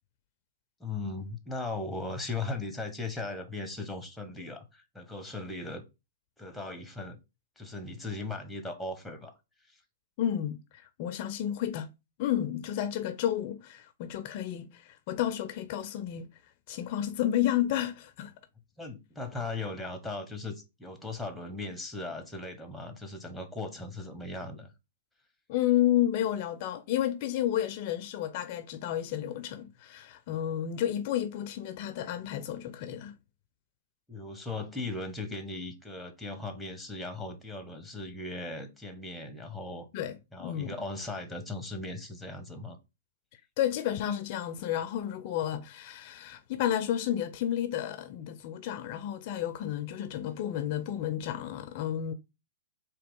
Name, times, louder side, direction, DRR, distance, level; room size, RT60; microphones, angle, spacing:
voice 1, 0.8-5.8 6.4-7.2 7.6-9.3 9.7-9.8 18.8-24.7 34.1-39.9 40.3-42.8, left 2 dB, ahead, 0.9 m, -38 dB
voice 2, 10.2-11.9 12.2-16.3 16.7-18.3 25.5-33.2 39.9-40.8 43.3-52.1, left 11 dB, 45° left, 0.4 m, -31 dB
3.7 x 2.8 x 3.5 m
hypercardioid pair, 130°, 0 cm